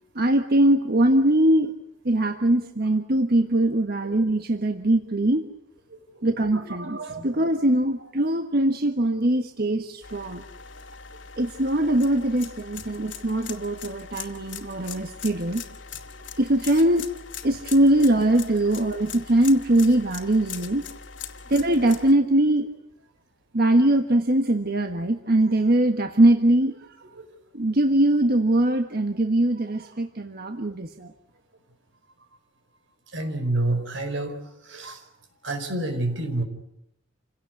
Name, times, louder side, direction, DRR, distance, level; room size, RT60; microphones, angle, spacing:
voice 1, 0.1-1.7 2.0-5.4 6.2-10.4 11.4-15.6 16.4-17.1 17.4-20.8 21.5-22.7 23.5-26.7 27.5-31.1, right 1 dB, 55° right, 6 dB, 1.4 m, -21 dB
voice 2, 5.9-7.3 27.2-27.3 33.1-35.0 35.4-36.4, right 2 dB, 85° right, 7 dB, 5.0 m, -29 dB
sound 1, 10.0-22.1, left 7 dB, 80° left, 2.3 m, -41 dB
28.5 x 17.5 x 9.6 m, 0.80 s
head